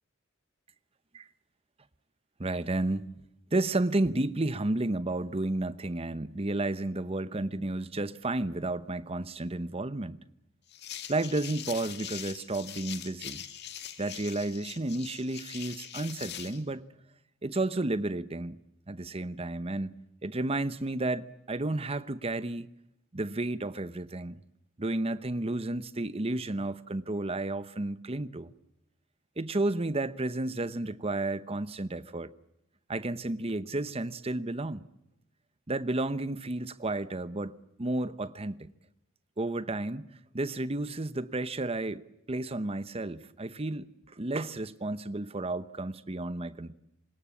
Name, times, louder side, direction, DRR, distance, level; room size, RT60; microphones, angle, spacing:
voice 1, 2.4-3.1 3.5-10.2 11.1-13.4 14.0-16.8 17.4-18.6 18.9-22.7 23.1-24.4 24.8-28.5 29.4-32.3 32.9-34.9 35.7-38.7 39.4-40.1 40.3-46.7, right 2 dB, 30° right, 0.9 m, -32 dB
sound 1, 10.7-16.6, left 10 dB, 55° left, 2.0 m, -42 dB
25.5 x 20.5 x 8.5 m
head